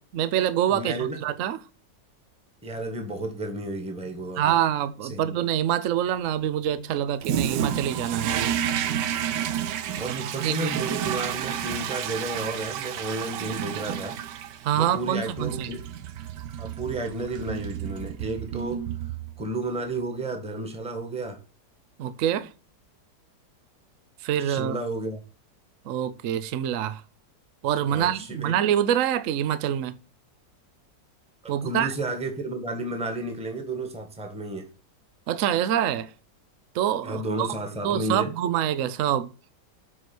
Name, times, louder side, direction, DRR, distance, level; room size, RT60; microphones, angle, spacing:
voice 1, 0.1-1.6 4.4-8.5 10.1-10.8 14.6-15.7 22.0-22.5 24.2-24.7 25.9-27.0 27.6-29.9 31.5-31.9 35.3-36.1 36.7-37.5 37.8-39.3, right 10 dB, 60° right, 0.9 m, -26 dB
voice 2, 0.7-1.2 2.6-4.5 5.1-5.4 10.0-14.1 14.7-15.8 16.6-18.8 19.4-21.4 24.4-25.2 27.9-28.6 31.4-34.7 37.0-38.3, right 2 dB, 5° right, 1.4 m, -32 dB
Toilet flush, 7.2-19.5, right 9 dB, 80° right, 1.3 m, -31 dB
7.9 x 4.7 x 6.0 m
omnidirectional pair, 1.9 m